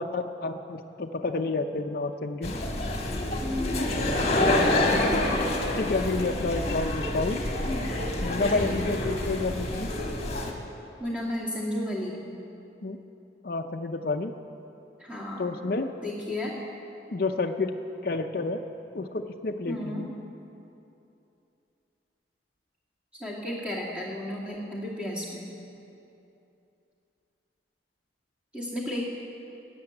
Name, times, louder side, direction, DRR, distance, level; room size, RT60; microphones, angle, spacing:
voice 1, 0.0-2.5 5.7-7.4 8.2-9.9 12.8-13.0 13.4-14.3 15.4-15.9 17.1-17.7 18.0-18.6 18.9-20.1, left 3 dB, 50° left, 4 dB, 0.5 m, -29 dB
sound 1, 2.4-10.5, left 1 dB, 35° left, 1.5 m, -27 dB
voice 2, 3.4-4.0 4.7-5.3 8.5-8.9 11.0-12.2 15.0-15.5 16.0-16.5 19.7-20.1 23.2-25.5 28.5-29.0, left 1 dB, 5° right, -5 dB, 2.4 m, -33 dB
13.0 x 8.6 x 8.9 m, 2.8 s
head